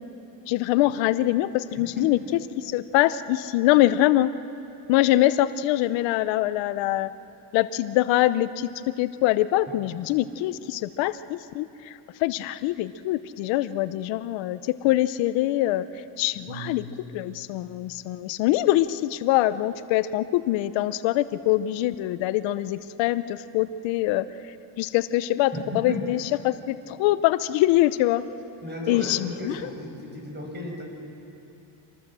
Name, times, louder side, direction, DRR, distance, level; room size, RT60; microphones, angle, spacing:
voice 1, 0.5-4.3 4.9-7.1 7.5-8.7 9.0-15.9 16.2-16.8 17.1-24.2 24.8-28.2 28.9-29.5, left 15 dB, 90° left, 14 dB, 0.8 m, -24 dB
voice 2, 1.8-2.2 16.5-16.9 25.5-26.0 28.6-30.8, equal, 25° right, 1 dB, 5.8 m, -35 dB
26.0 x 19.0 x 7.5 m, 2.8 s
cardioid pair, 115°, 44 cm